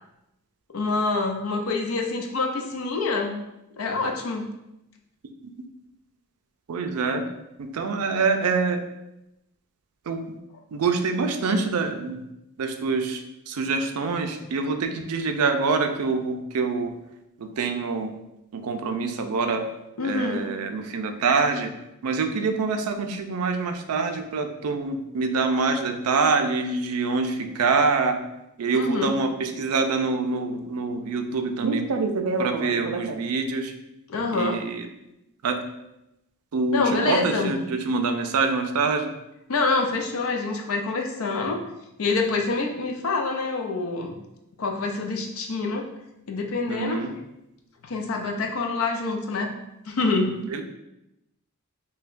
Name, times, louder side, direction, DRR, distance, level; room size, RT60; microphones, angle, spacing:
voice 1, 0.7-3.4 3.8-4.4 20.0-20.5 28.7-29.1 34.1-34.6 36.7-37.6 39.5-41.6 42.0-44.1 44.6-45.9 46.3-47.1 47.8-49.5 49.9-50.4, left 3 dB, 65° left, 3 dB, 0.5 m, -26 dB
voice 2, 6.7-7.3 7.6-8.8 10.1-10.2 10.7-12.2 12.6-16.9 17.4-18.1 18.5-19.7 20.0-21.7 22.0-28.2 28.6-33.7 34.3-34.9 35.4-35.6 36.5-39.1 46.7-47.1 50.5-50.6, right 4 dB, 80° right, 6 dB, 0.4 m, -25 dB
5.4 x 2.2 x 2.5 m, 0.89 s
head